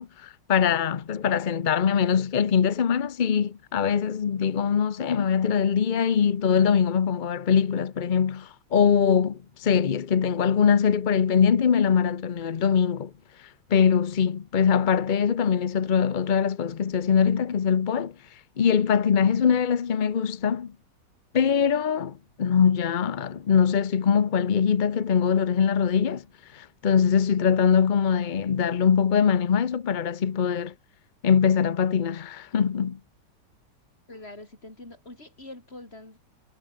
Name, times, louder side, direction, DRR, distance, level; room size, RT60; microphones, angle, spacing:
voice 1, 0.0-13.1 13.4-18.1 18.6-20.7 21.3-26.2 26.5-30.7 31.2-33.0, left 7 dB, 50° left, 0.5 m, -22 dB
voice 2, 34.1-36.2, left 2 dB, 35° left, 5.2 m, -44 dB
omnidirectional pair, 1.9 m